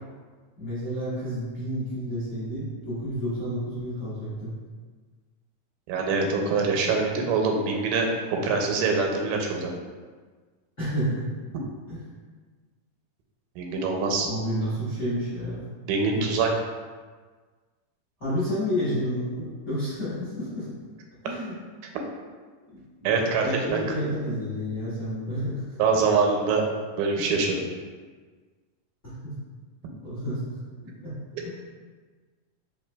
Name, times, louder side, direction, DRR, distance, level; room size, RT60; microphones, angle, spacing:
voice 1, 0.6-4.5 10.8-11.3 11.9-12.0 14.2-15.7 16.1-16.4 18.2-20.7 21.2-21.5 22.7-23.1 23.4-25.6 27.1-27.2 29.0-29.3 30.0-30.6 31.0-31.1 31.4-31.5, equal, 60° left, -13 dB, 0.7 m, -30 dB
voice 2, 5.9-9.7 13.6-14.3 15.9-16.5 23.0-23.8 25.3-25.4 25.8-26.7 27.0-27.6, right 4 dB, 90° right, 2 dB, 2.1 m, -24 dB
4.4 x 3.2 x 2.2 m, 1.5 s
omnidirectional pair, 3.6 m